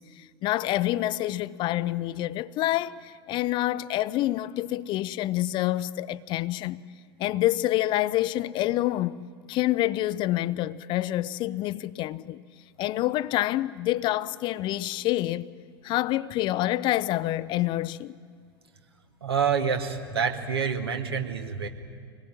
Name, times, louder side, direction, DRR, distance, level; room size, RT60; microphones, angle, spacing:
voice 1, 0.0-6.8 7.2-9.2 9.5-12.4 12.8-15.5 15.8-18.1, left 15 dB, 35° left, 0.6 m, -27 dB
voice 2, 19.2-21.7, right 6 dB, 75° right, 2.1 m, -27 dB
25.5 x 20.5 x 9.1 m
figure-of-eight pair, 85°, 13 cm